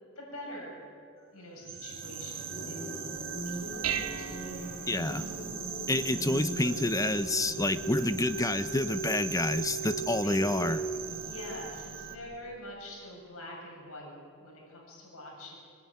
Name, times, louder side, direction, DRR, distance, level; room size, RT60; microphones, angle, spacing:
voice 1, 0.2-0.9 1.3-5.3 6.6-6.8 10.2-10.4 11.2-15.6, left 1 dB, 75° left, -1 dB, 7.0 m, -45 dB
sound 1, 1.6-12.2, right 8 dB, 45° right, 2.2 m, -40 dB
sound 2, 2.5-11.5, right 2 dB, 40° left, 3.0 m, -39 dB
Dishes pots and pans, 3.1-12.4, right 7 dB, 75° right, 1.6 m, -43 dB
voice 2, 4.9-5.2 5.9-10.8, left 2 dB, 15° left, 12 dB, 0.8 m, -28 dB
24.0 x 19.5 x 9.8 m, 2.5 s
head